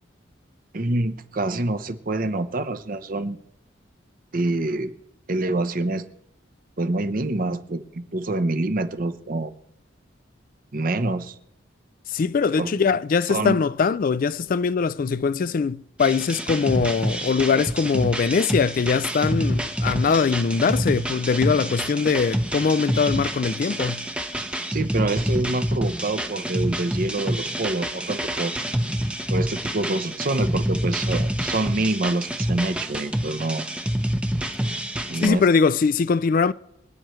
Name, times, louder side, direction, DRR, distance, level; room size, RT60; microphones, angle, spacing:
voice 1, 0.7-3.4 4.3-4.9 5.3-6.1 6.8-9.5 10.7-11.4 12.6-13.0 13.3-13.5 24.7-28.5 29.3-33.7 35.1-35.4, right 2 dB, 45° right, 0.8 m, -26 dB
voice 2, 12.1-24.1 35.2-36.5, left 5 dB, 45° left, 0.3 m, -22 dB
sound 1, 16.0-35.3, equal, 5° right, 0.7 m, -27 dB
25.0 x 9.2 x 3.1 m
head